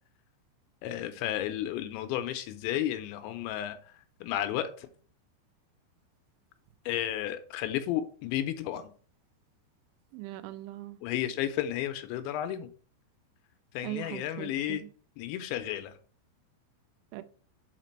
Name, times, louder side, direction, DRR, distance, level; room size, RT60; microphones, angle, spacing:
voice 1, 0.8-3.8 4.2-4.9 6.9-8.9 11.0-12.7 13.7-14.8 15.2-16.0, left 12 dB, 85° left, 2.9 m, -32 dB
voice 2, 10.1-11.0 13.8-14.9 17.1-17.2, right 16 dB, 85° right, 3.0 m, -40 dB
5.9 x 5.1 x 4.3 m
omnidirectional pair, 5.4 m